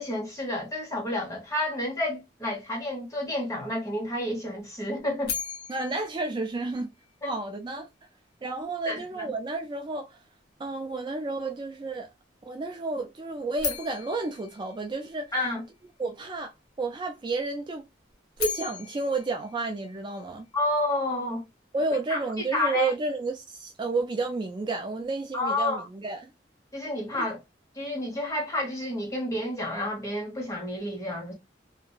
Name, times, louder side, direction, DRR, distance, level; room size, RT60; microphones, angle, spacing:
voice 1, 0.0-5.3 7.2-7.3 8.9-9.3 15.3-15.6 20.5-21.4 22.1-22.9 25.3-25.9 26.7-27.4 27.7-31.3, left 1 dB, 20° left, 1.1 m, -30 dB
sound 1, 5.2-7.4 13.6-15.7 18.1-20.5, left 7 dB, 60° left, 1.0 m, -37 dB
voice 2, 5.7-6.9 7.3-7.9 8.4-10.2 10.6-12.1 12.4-15.3 16.0-16.5 16.8-17.9 18.4-20.5 21.7-26.3 27.1-27.2, right 3 dB, 25° right, 0.3 m, -31 dB
2.9 x 2.5 x 2.3 m
head